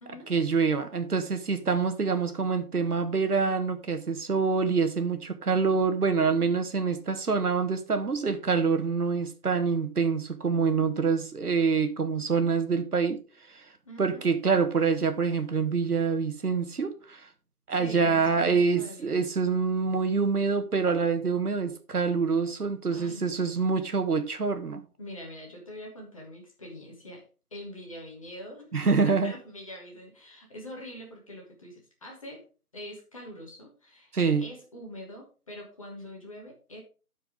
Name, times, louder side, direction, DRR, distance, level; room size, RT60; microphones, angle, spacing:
voice 1, 0.3-13.2 13.5-13.6 14.0-17.3 17.7-24.8 28.7-29.3 34.1-34.4, right 5 dB, 80° right, 1.4 m, -26 dB
voice 2, 13.8-14.3 17.8-19.2 22.9-23.3 25.0-27.2 27.5-28.7 29.0-32.4 32.7-34.1 34.4-36.8, equal, 20° left, 1.5 m, -44 dB
12.5 x 4.7 x 3.5 m
figure-of-eight pair, 165°, 45 cm